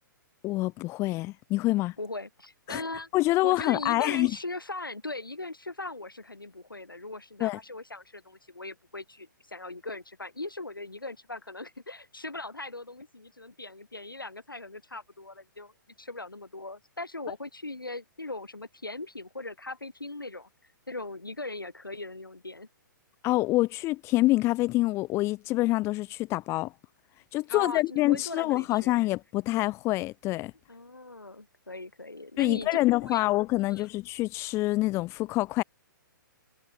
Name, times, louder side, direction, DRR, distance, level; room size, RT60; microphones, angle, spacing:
voice 1, 0.4-1.9 2.7-2.8 3.1-4.3 7.4-7.6 23.2-26.7 27.3-30.5 32.4-35.6, left 18 dB, 25° left, 1.7 m, -26 dB
voice 2, 2.0-3.1 3.4-20.5 20.9-22.7 27.5-29.0 30.7-32.7 33.0-33.3 33.7-33.9, left 2 dB, 80° left, 5.2 m, -39 dB
figure-of-eight pair, 120°, 11 cm